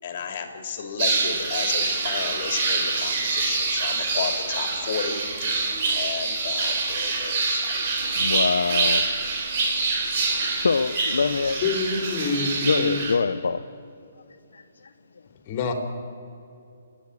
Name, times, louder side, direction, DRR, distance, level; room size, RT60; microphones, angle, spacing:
voice 1, 0.0-5.2 5.9-7.9, left 6 dB, 50° left, 6 dB, 2.7 m, -32 dB
sound 1, 1.0-13.1, right 3 dB, 45° right, 3.8 m, -26 dB
voice 2, 8.2-9.1 10.4-11.6 12.6-13.6 14.5-14.9, left 4 dB, 80° left, 9 dB, 0.6 m, -24 dB
voice 3, 11.6-13.1 15.5-15.7, left 4 dB, 35° left, 4 dB, 3.5 m, -26 dB
30.0 x 10.0 x 8.5 m, 2.6 s
hypercardioid pair, 140°, 0 cm